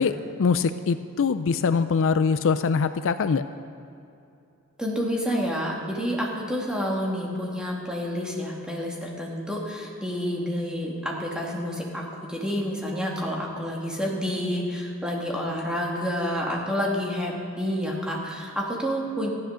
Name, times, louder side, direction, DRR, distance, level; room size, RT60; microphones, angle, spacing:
voice 1, 0.0-3.4, left 5 dB, 65° left, 11 dB, 0.4 m, -23 dB
voice 2, 4.8-19.3, equal, 5° right, -3 dB, 2.0 m, -29 dB
14.5 x 10.5 x 6.3 m, 2.7 s
head